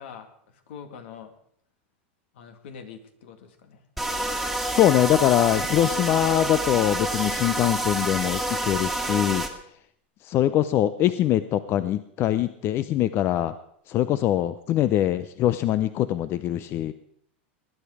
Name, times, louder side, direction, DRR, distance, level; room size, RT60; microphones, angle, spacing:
voice 1, 0.0-1.3 2.3-3.8, left 7 dB, 70° left, 7 dB, 2.2 m, -44 dB
sound 1, 4.0-9.5, right 1 dB, ahead, 1.9 m, -28 dB
voice 2, 4.8-9.5 10.2-13.5 13.9-16.9, left 12 dB, 40° left, 14 dB, 0.6 m, -23 dB
19.5 x 10.0 x 4.9 m, 0.67 s
hypercardioid pair, 115°, 6 cm